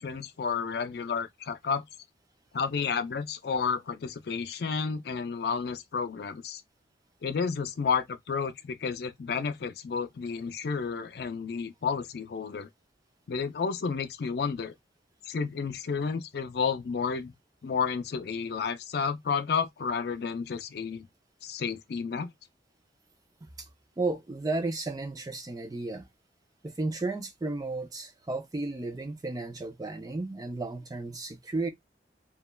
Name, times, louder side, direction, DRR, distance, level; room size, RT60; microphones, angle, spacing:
voice 1, 0.0-1.8 2.5-6.6 7.2-12.7 13.3-14.7 15.2-17.3 17.6-21.1 21.4-22.3, left 5 dB, 60° left, 0.4 m, -31 dB
voice 2, 24.0-26.1 26.6-31.7, right 2 dB, 20° right, 0.4 m, -33 dB
2.9 x 2.3 x 2.2 m
head